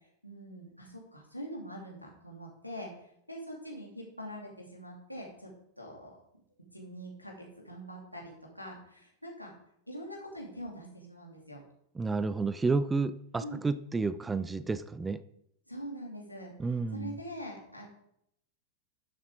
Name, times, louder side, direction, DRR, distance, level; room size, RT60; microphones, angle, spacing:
voice 1, 0.2-2.9 3.3-5.5 5.8-6.2 6.7-9.5 9.9-11.6 13.4-13.6 15.7-16.5 16.9-17.9, equal, 90° left, -1 dB, 2.6 m, -43 dB
voice 2, 12.0-15.2 16.6-17.1, right 4 dB, 10° right, 15 dB, 0.5 m, -31 dB
12.0 x 7.3 x 3.8 m, 0.73 s
figure-of-eight pair, 90°, 0 cm